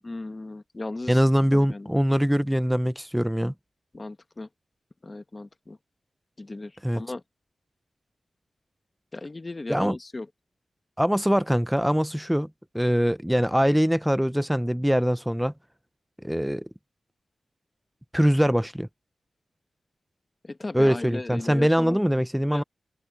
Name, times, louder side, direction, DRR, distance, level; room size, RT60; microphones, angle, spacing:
voice 1, 0.0-1.2 1.5-1.9 3.9-4.5 5.0-5.8 6.4-7.2 9.1-10.3 20.4-22.0 22.5-22.6, left 2 dB, 25° left, 1.3 m, -36 dB
voice 2, 1.1-3.5 6.8-7.0 9.7-10.0 11.0-12.5 12.7-15.5 16.2-16.7 18.1-18.9 20.7-22.6, equal, 5° right, 0.4 m, -23 dB
wide cardioid pair, 140°, 0 cm